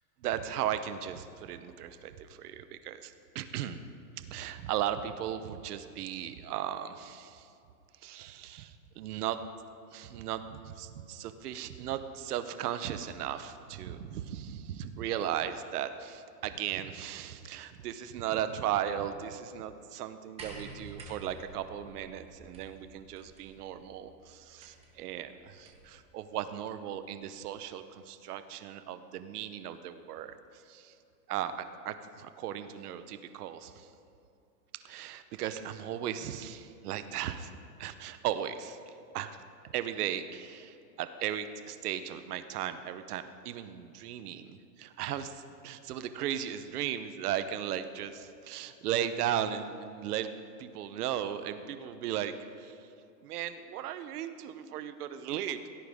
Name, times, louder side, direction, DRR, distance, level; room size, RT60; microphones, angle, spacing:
voice 1, 0.2-3.8 4.2-7.5 8.0-9.4 9.9-31.0 31.3-33.9 34.8-37.5 37.8-39.4 39.7-52.9 53.2-55.7, right 10 dB, 70° right, 11 dB, 0.9 m, -36 dB
sound 1, 20.4-26.0 27.1-27.2, right 3 dB, 10° right, 0.9 m, -50 dB
16.5 x 13.5 x 3.6 m, 2.7 s
supercardioid pair, 170°, 49 cm